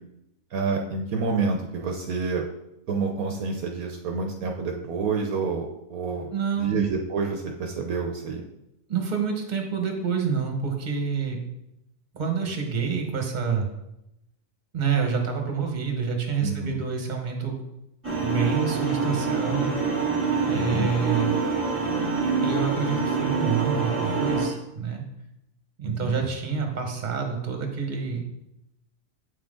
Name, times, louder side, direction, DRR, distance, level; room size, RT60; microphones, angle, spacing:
voice 1, 0.5-2.4 2.9-8.4 16.4-16.8 20.5-20.9 26.0-26.3, right 4 dB, 70° right, 2 dB, 1.2 m, -28 dB
voice 2, 6.3-6.9 8.9-11.4 12.1-13.7 14.7-17.6 18.2-19.7 20.4-21.4 22.4-25.0 25.8-28.2, right 6 dB, 30° right, 3 dB, 1.3 m, -27 dB
sound 1, 18.0-24.5, right 4 dB, 10° right, 2.1 m, -26 dB
8.3 x 6.0 x 3.7 m, 0.86 s
omnidirectional pair, 1.6 m